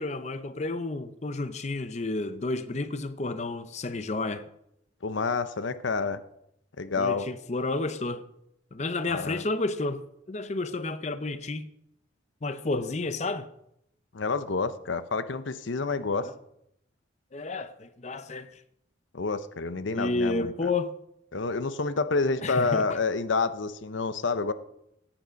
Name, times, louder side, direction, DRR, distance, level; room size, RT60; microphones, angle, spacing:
voice 1, 0.0-4.5 7.0-8.3 8.7-10.0 10.3-11.7 12.4-13.5 16.1-16.3 17.3-18.5 19.9-20.9 22.4-23.0, left 2 dB, 35° left, 0.6 m, -31 dB
voice 2, 5.0-6.2 6.8-7.3 9.1-9.4 14.1-16.3 19.1-20.7 21.3-24.5, left 4 dB, 75° left, 0.7 m, -28 dB
16.5 x 9.0 x 5.2 m
head